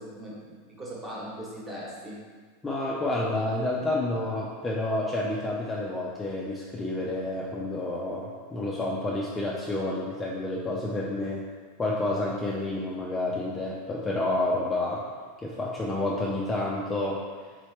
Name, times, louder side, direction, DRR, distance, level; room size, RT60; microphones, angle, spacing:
voice 1, 0.0-2.2, equal, 20° right, -5 dB, 1.1 m, -39 dB
voice 2, 2.6-11.5 11.8-15.0 15.4-17.2, left 2 dB, 15° left, -4 dB, 0.4 m, -29 dB
3.9 x 3.1 x 3.1 m, 1.5 s
supercardioid pair, 125°, 0 cm